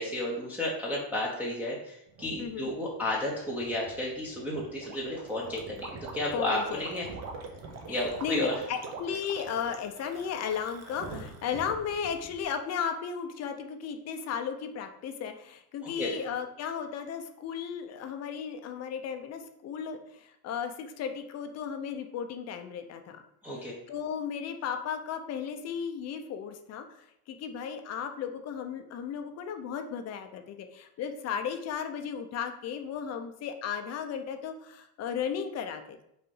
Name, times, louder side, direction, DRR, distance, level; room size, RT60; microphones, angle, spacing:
voice 1, 0.0-7.1 7.9-8.5 15.8-16.1 23.4-23.7, left 1 dB, 5° right, -6 dB, 0.9 m, -32 dB
sound 1, 2.1-12.4, right 3 dB, 80° right, 2.4 m, -49 dB
voice 2, 2.4-2.7 6.3-7.0 7.9-23.2 23.5-36.0, left 7 dB, 40° left, 7 dB, 0.7 m, -35 dB
Gurgling, 4.8-11.7, right 4 dB, 40° right, 0.9 m, -44 dB
5.7 x 4.1 x 5.5 m, 0.79 s
cardioid pair, 175°, 40 cm